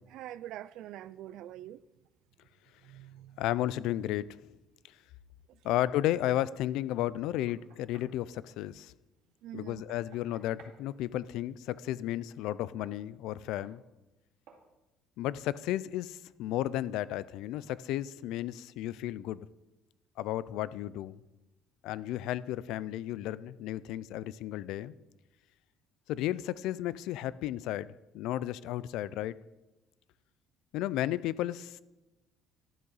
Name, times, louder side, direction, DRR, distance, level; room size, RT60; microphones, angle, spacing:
voice 1, 0.1-1.8 2.8-3.4 5.5-5.7 9.4-9.8, right 13 dB, 60° right, 0.3 m, -45 dB
voice 2, 3.4-4.3 5.6-8.9 9.5-13.8 15.2-19.5 20.2-21.2 21.8-24.9 26.1-29.4 30.7-31.8, left 13 dB, 65° left, 0.3 m, -33 dB
Knock, 7.0-8.2 9.7-10.8 12.8-13.0 13.6-13.8 14.5-14.7, right 5 dB, 80° right, 2.2 m, -57 dB
12.0 x 8.6 x 4.0 m
cardioid pair, 175°, 0 cm